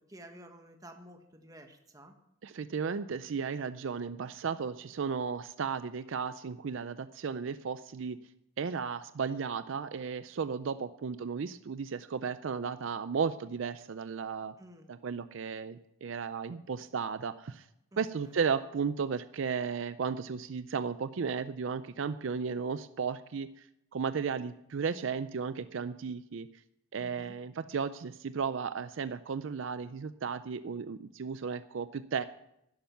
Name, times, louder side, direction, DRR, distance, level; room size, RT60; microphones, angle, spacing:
voice 1, 0.1-2.1 14.6-14.9 17.9-18.4 27.0-27.3, right 1 dB, 15° right, 4 dB, 1.3 m, -52 dB
voice 2, 2.4-8.2 8.6-14.5 14.9-17.6 18.0-23.7 23.9-26.5 26.9-32.2, right 6 dB, 65° right, 13 dB, 0.4 m, -34 dB
11.5 x 11.0 x 5.8 m, 0.80 s
head